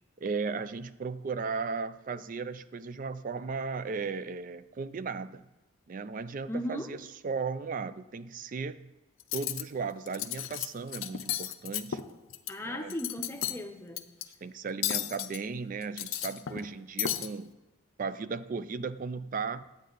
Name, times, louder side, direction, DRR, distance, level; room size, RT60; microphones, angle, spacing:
voice 1, 0.2-5.5 5.9-8.9 9.3-12.0 12.6-12.9 14.4-17.5 18.0-19.6, right 4 dB, 40° right, 14 dB, 0.3 m, -36 dB
voice 2, 6.5-6.9 12.5-14.1, left 1 dB, 10° left, 4 dB, 0.7 m, -37 dB
Cutlery silverware, 9.2-9.6 10.1-10.7 10.9-12.5 12.9-13.6 14.0-14.2 14.8-15.4 15.8-16.7 17.0-17.3, left 11 dB, 70° left, 0.5 m, -33 dB
10.5 x 8.3 x 3.9 m, 1.1 s
head